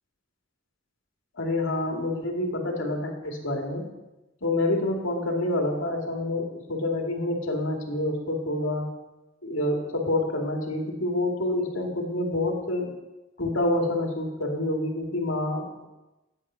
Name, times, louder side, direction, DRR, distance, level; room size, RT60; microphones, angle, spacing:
voice 1, 1.4-3.9 4.4-8.9 9.4-12.9 13.4-15.9, left 1 dB, 70° left, 1 dB, 2.4 m, -27 dB
12.0 x 9.1 x 5.6 m, 1.0 s
head